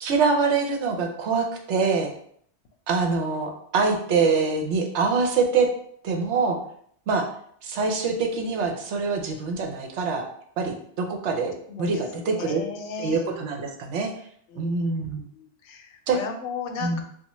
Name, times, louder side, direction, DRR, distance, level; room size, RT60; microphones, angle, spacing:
voice 1, 0.0-2.1 2.9-5.7 6.0-6.6 7.1-7.3 7.6-10.2 10.6-12.6 13.0-14.1 14.5-15.3 16.1-16.2 16.8-17.0, right 4 dB, 75° right, 3 dB, 0.9 m, -24 dB
voice 2, 11.7-13.2 14.5-15.0 15.3-17.0, left 5 dB, 75° left, 4 dB, 0.9 m, -35 dB
3.5 x 2.3 x 3.0 m, 0.63 s
omnidirectional pair, 1.3 m